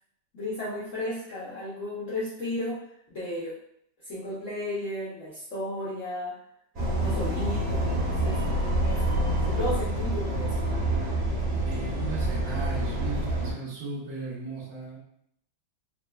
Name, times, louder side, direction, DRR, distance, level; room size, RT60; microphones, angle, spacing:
voice 1, 0.3-2.8 3.1-3.6 4.0-6.4 6.8-9.1 9.5-10.5, left 1 dB, 80° left, -8 dB, 0.7 m, -34 dB
sound 1, 6.7-13.5, right 1 dB, 40° right, 1.7 m, -27 dB
voice 2, 11.6-15.0, right 2 dB, 70° right, -6 dB, 1.5 m, -36 dB
4.1 x 2.2 x 2.2 m, 0.71 s
omnidirectional pair, 2.2 m